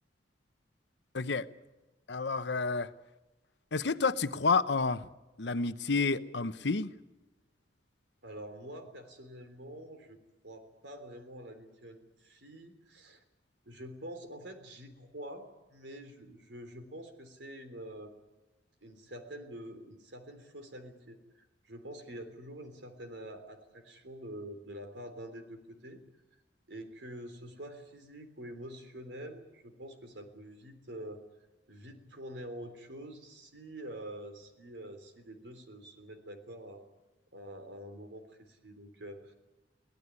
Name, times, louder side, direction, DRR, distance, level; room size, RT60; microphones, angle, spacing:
voice 1, 1.1-1.5 2.1-2.9 3.7-5.1 5.4-6.9, left 4 dB, 70° left, 13 dB, 0.9 m, -30 dB
voice 2, 8.2-13.2 13.7-18.2 18.8-26.0 26.7-31.2 31.7-36.9 37.3-39.3, right 1 dB, 80° right, 8 dB, 3.6 m, -46 dB
24.0 x 17.5 x 9.8 m, 1.1 s
head